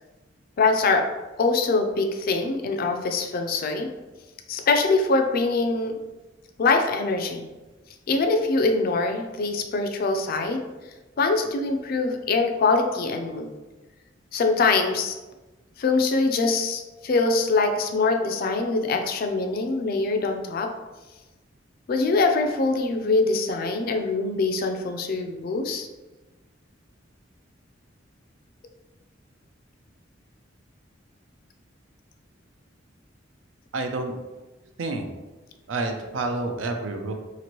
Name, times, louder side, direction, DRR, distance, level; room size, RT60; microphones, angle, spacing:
voice 1, 0.6-1.1 1.4-3.9 4.5-5.9 6.6-7.5 8.1-10.6 11.2-13.5 14.3-15.1 15.8-20.7 21.9-25.9, left 3 dB, 50° left, 5 dB, 0.3 m, -23 dB
voice 2, 33.7-34.1 34.8-35.1 35.7-37.1, right 2 dB, 80° right, 5 dB, 0.4 m, -28 dB
2.9 x 2.5 x 2.9 m, 1.1 s
head